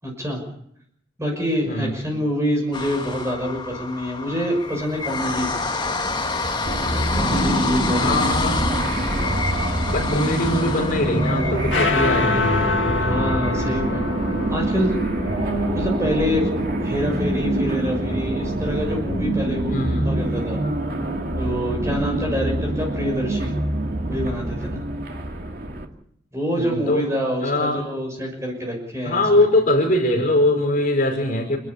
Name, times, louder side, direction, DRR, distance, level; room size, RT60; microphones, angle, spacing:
voice 1, 0.0-0.4 1.2-5.5 6.8-8.4 13.0-14.1 14.5-15.0 15.7-16.5 16.8-19.8 20.0-20.6 21.4-23.5 24.1-24.8 26.3-29.4, equal, 15° right, 1 dB, 6.1 m, -26 dB
voice 2, 1.7-2.0 7.9-8.7 9.9-12.5 19.7-20.1 26.6-27.1 27.4-27.8 29.0-31.6, left 1 dB, 45° left, 0 dB, 5.2 m, -22 dB
sound 1, 2.7-16.8 17.3-17.4 17.6-17.7, left 3 dB, 25° left, 1.6 m, -29 dB
sound 2, 6.7-25.9, right 1 dB, 50° right, 2.6 m, -25 dB
sound 3, 10.4-18.9, left 4 dB, 85° left, 1.7 m, -28 dB
28.0 x 12.0 x 9.9 m, 0.71 s
head